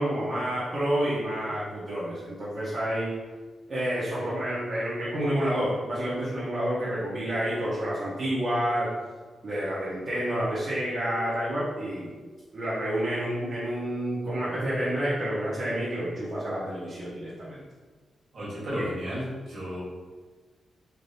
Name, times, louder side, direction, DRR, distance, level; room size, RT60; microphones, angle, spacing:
voice 1, 0.0-3.1 3.7-8.9 9.4-12.1 12.5-17.6, right 1 dB, 40° right, -10 dB, 0.8 m, -29 dB
voice 2, 18.3-19.8, equal, 65° right, -7 dB, 1.5 m, -33 dB
3.3 x 2.6 x 2.7 m, 1.4 s
cardioid pair, 110°, 0 cm